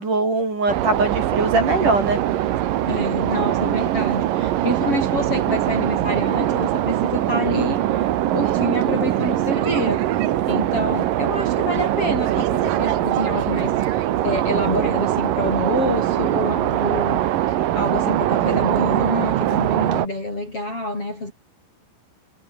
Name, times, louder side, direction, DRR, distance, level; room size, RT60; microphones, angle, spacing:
voice 1, 0.0-2.2, right 3 dB, 40° right, 9.4 m, -21 dB
sound 1, 0.7-20.1, right 13 dB, 75° right, 2.0 m, -22 dB
voice 2, 2.9-10.2 10.5-21.3, left 2 dB, 25° left, 8.4 m, -27 dB
omnidirectional pair, 5.9 m